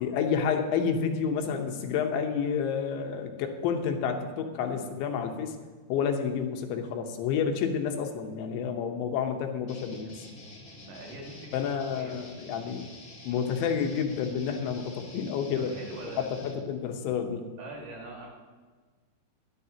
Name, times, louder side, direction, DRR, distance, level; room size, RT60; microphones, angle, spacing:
voice 1, 0.0-5.6 5.9-10.2 11.5-12.9 13.3-15.8 16.2-17.5, left 7 dB, 85° left, 4 dB, 3.4 m, -29 dB
sound 1, 9.7-16.5, left 2 dB, 30° left, 2.1 m, -48 dB
voice 2, 10.8-11.6 11.9-12.3 15.6-16.5 17.6-18.3, right 2 dB, 55° right, -2 dB, 3.5 m, -43 dB
21.5 x 10.5 x 2.9 m, 1.4 s
omnidirectional pair, 5.2 m